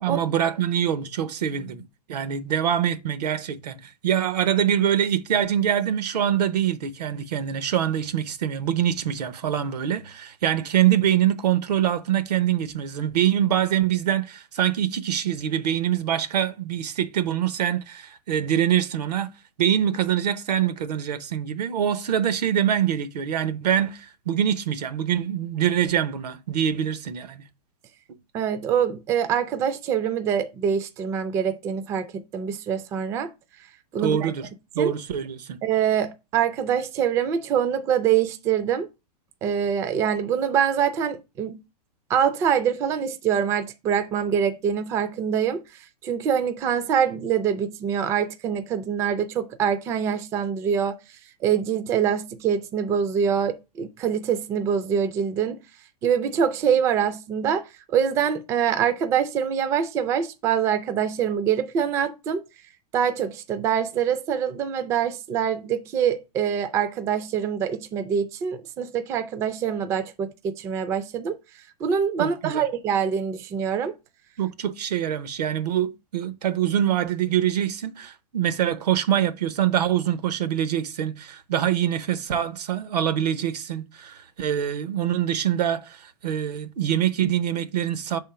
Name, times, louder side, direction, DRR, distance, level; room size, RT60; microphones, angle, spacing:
voice 1, 0.0-1.8 2.1-3.8 4.0-19.3 19.6-27.4 34.0-34.5 34.7-35.6 72.2-72.7 74.4-88.2, right 10 dB, 85° right, 0.8 m, -24 dB
voice 2, 28.3-33.3 33.9-34.3 34.8-34.9 35.6-38.9 39.4-41.6 42.1-45.6 46.0-51.0 51.4-55.6 56.0-62.4 62.9-71.3 71.8-73.9, right 8 dB, 15° right, 0.3 m, -24 dB
5.4 x 3.7 x 5.6 m
hypercardioid pair, 150°, 20 cm